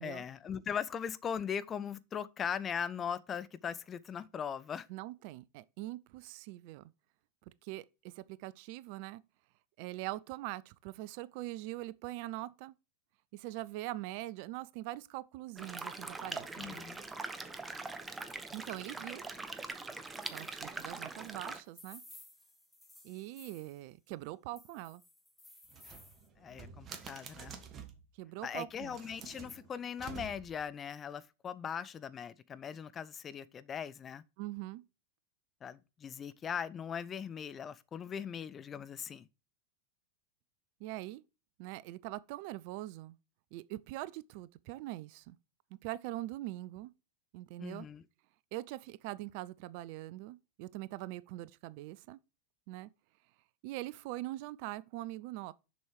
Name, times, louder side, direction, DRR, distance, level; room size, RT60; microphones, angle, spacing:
voice 1, 0.0-4.9 16.6-17.0 26.4-27.5 28.4-34.2 35.6-39.3 47.6-48.0, left 7 dB, 25° left, 0.5 m, -39 dB
voice 2, 4.9-6.9 7.6-9.2 9.8-12.7 13.3-16.8 18.5-19.2 20.3-22.0 23.0-25.0 28.2-29.0 34.4-34.8 40.8-41.2 41.6-43.2 43.5-45.4 45.8-46.9 47.3-47.9 48.5-52.2 52.7-52.9 53.6-55.5, right 17 dB, 45° right, 0.4 m, -42 dB
sound 1, 15.6-21.6, right 3 dB, 10° right, 0.9 m, -42 dB
sound 2, 20.2-23.8 24.6-26.3, left 1 dB, 5° left, 1.8 m, -57 dB
sound 3, 25.7-28.1 28.8-30.7, right 6 dB, 30° right, 1.3 m, -49 dB
6.9 x 6.2 x 4.8 m
figure-of-eight pair, 90°, 0 cm